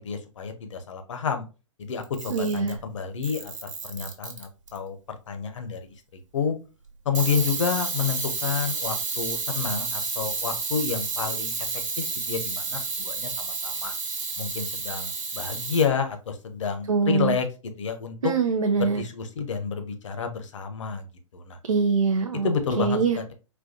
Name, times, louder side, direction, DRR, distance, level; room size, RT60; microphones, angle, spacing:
voice 1, 0.0-1.4 1.8-5.9 6.3-6.5 7.0-11.7 12.0-13.9 14.4-17.5 17.8-18.3 18.8-21.1 21.3-21.6 22.4-23.3, left 6 dB, 65° left, 7 dB, 0.7 m, -29 dB
Camera, 2.0-2.8 3.2-4.8 7.2-15.9, right 4 dB, 70° right, 1.1 m, -31 dB
voice 2, 2.3-2.8 16.9-17.4 18.2-19.0 21.6-22.5 22.8-23.2, right 5 dB, 90° right, 6 dB, 0.4 m, -23 dB
4.1 x 2.2 x 2.6 m, 0.31 s
figure-of-eight pair, 125°, 17 cm